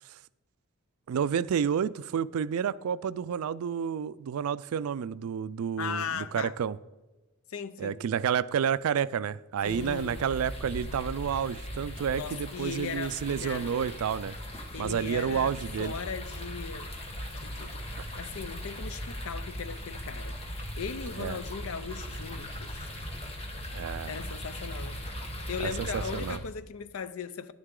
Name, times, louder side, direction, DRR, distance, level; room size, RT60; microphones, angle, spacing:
voice 1, 1.1-6.8 7.8-14.4 14.8-15.9 18.0-18.1 21.2-21.4 23.7-24.2 25.6-26.4, right 7 dB, 80° right, 0.3 m, -30 dB
voice 2, 5.8-6.5 7.5-8.0 9.6-10.3 12.1-13.7 14.7-15.5 15.8-16.9 17.4-17.8 18.2-20.3 20.8-22.9 24.0-25.0 25.5-27.5, left 6 dB, 70° left, 0.5 m, -38 dB
sound 1, 9.6-26.4, equal, 25° left, 1.1 m, -39 dB
10.5 x 9.7 x 3.7 m
head